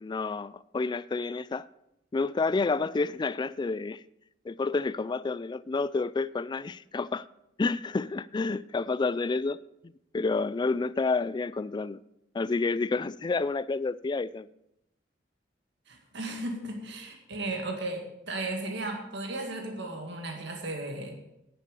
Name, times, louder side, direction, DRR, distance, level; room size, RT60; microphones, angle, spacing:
voice 1, 0.0-1.7 2.1-4.0 4.5-7.3 7.6-9.6 10.1-12.0 12.3-14.5, left 3 dB, 25° left, 0.3 m, -29 dB
voice 2, 15.9-21.2, right 2 dB, 70° right, 2.0 m, -35 dB
11.0 x 7.6 x 6.7 m
head